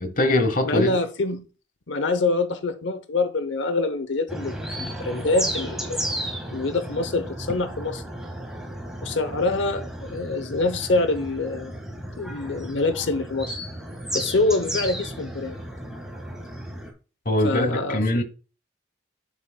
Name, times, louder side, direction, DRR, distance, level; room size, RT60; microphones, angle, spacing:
voice 1, 0.0-1.0 17.2-18.2, left 1 dB, 45° left, 1.0 m, -22 dB
voice 2, 0.6-1.4 1.9-6.0 6.5-8.0 9.0-11.8 12.2-13.6 14.1-15.6 17.4-18.0, left 3 dB, 80° left, 0.8 m, -25 dB
sound 1, 4.3-16.9, right 1 dB, 5° right, 1.7 m, -34 dB
9.6 x 7.5 x 2.2 m
head